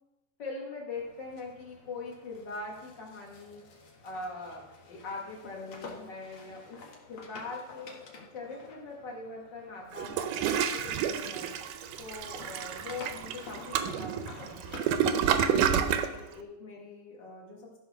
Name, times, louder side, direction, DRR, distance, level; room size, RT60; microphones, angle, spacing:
voice 1, 0.4-3.6 4.0-6.8 7.1-8.0 8.3-11.5 12.0-14.9 15.4-17.8, left 3 dB, 35° left, -2 dB, 2.6 m, -42 dB
sound 1, 0.9-11.5 11.8-16.2, left 3 dB, 50° left, 1.8 m, -51 dB
Toilet flush, 9.9-16.1, right 8 dB, 80° right, 2.2 m, -29 dB
14.0 x 5.5 x 5.9 m, 0.98 s
omnidirectional pair, 4.0 m